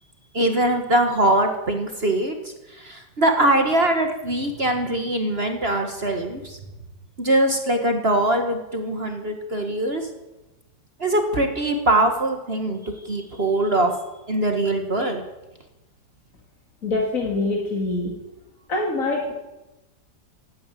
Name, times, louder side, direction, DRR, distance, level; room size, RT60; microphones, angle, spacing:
voice 1, 0.3-2.4 2.8-6.6 7.2-10.1 11.0-13.9 14.3-15.2, right 1 dB, 40° right, 5 dB, 1.7 m, -22 dB
voice 2, 16.8-18.1 18.7-19.3, left 2 dB, 55° left, -1 dB, 2.9 m, -24 dB
16.5 x 9.6 x 9.1 m, 1.0 s
omnidirectional pair, 1.8 m